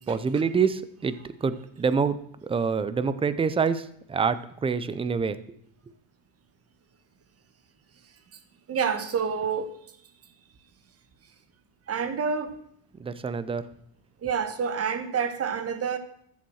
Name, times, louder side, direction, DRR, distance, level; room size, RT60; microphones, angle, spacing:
voice 1, 0.1-5.4 13.0-13.7, right 5 dB, 10° right, 14 dB, 0.5 m, -26 dB
voice 2, 8.7-9.7 11.9-12.6 14.2-16.0, right 6 dB, 30° right, 10 dB, 1.4 m, -28 dB
14.0 x 7.1 x 6.3 m, 0.70 s
cardioid pair, 140°, 49 cm